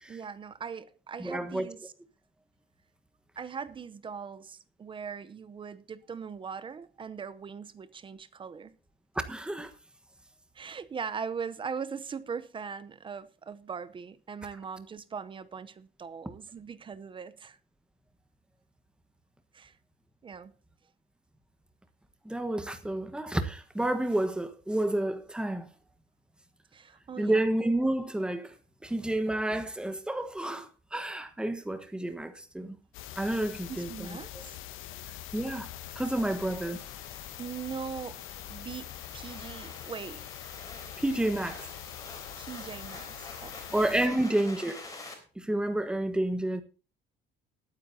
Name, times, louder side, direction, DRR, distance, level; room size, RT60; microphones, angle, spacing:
voice 1, 0.1-1.9 3.4-8.7 10.5-17.6 19.5-19.8 20.2-20.5 26.7-27.4 33.7-34.6 36.2-36.5 37.4-38.2 38.5-40.3 42.4-43.7 44.1-44.2, right 6 dB, 25° right, 0.7 m, -40 dB
voice 2, 1.2-1.7 9.3-9.7 22.2-25.6 27.2-28.5 28.8-32.8 33.2-34.4 35.3-35.7 35.9-36.8 41.0-41.7 43.7-44.8 45.4-46.6, right 1 dB, 5° right, 1.3 m, -30 dB
sound 1, 32.9-44.1, left 13 dB, 75° left, 1.1 m, -44 dB
sound 2, 34.8-45.1, left 3 dB, 15° left, 3.6 m, -48 dB
20.0 x 9.6 x 2.7 m
cardioid pair, 180°, 21 cm